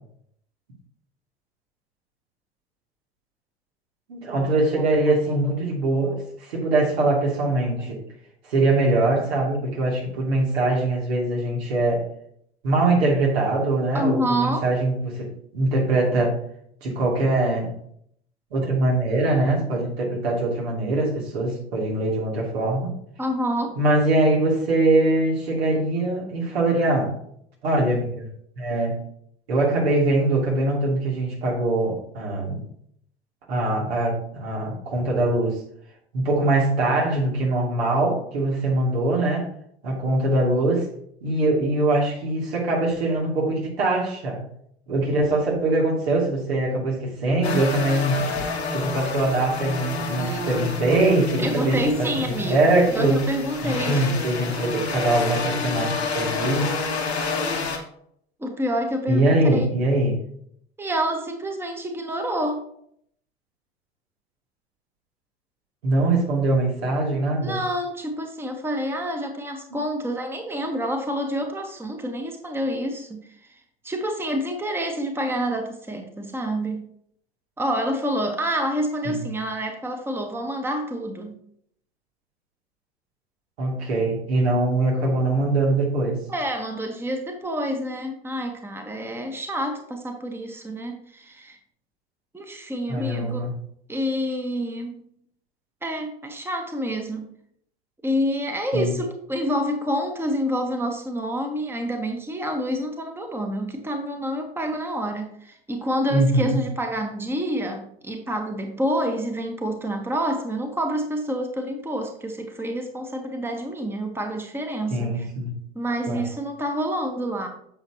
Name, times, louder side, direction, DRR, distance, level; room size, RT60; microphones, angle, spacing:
voice 1, 4.1-8.0 8.4-12.1 12.6-16.4 16.8-17.7 18.5-22.9 23.8-27.2 27.6-28.3 28.6-29.0 29.5-32.6 33.5-35.6 36.1-39.5 39.8-40.9 41.2-44.4 44.9-48.3 48.7-53.2 53.6-56.7 59.1-60.2 65.8-67.6 69.7-69.8 79.0-79.3 83.6-86.2 92.9-93.5 98.7-98.9 106.1-106.6 114.9-115.5 116.1-116.2, right 2 dB, 75° right, -2 dB, 2.8 m, -22 dB
voice 2, 4.8-5.4 6.1-6.2 7.8-8.0 13.9-14.6 23.2-23.8 51.4-52.6 52.9-54.1 58.4-59.7 60.8-62.6 67.4-76.8 77.6-81.4 86.3-91.6 92.3-93.4 93.9-95.1 95.8-97.3 98.0-115.3 115.7-117.5, equal, 5° right, 4 dB, 1.3 m, -28 dB
sound 1, 47.4-57.8, left 4 dB, 85° left, 1.6 m, -29 dB
8.8 x 6.6 x 3.0 m, 0.68 s
figure-of-eight pair, 80°, 32 cm